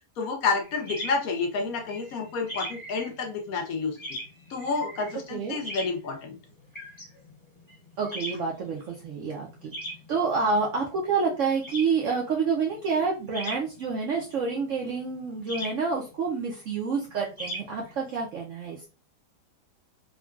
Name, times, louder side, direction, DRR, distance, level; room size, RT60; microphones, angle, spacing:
voice 1, 0.2-4.0 4.5-6.4, left 4 dB, 65° left, 3 dB, 1.0 m, -29 dB
sound 1, 0.6-18.3, equal, 20° left, 1.0 m, -41 dB
voice 2, 8.0-9.7 10.1-18.9, right 5 dB, 65° right, -1 dB, 0.8 m, -28 dB
3.7 x 2.2 x 2.3 m, 0.32 s
omnidirectional pair, 1.8 m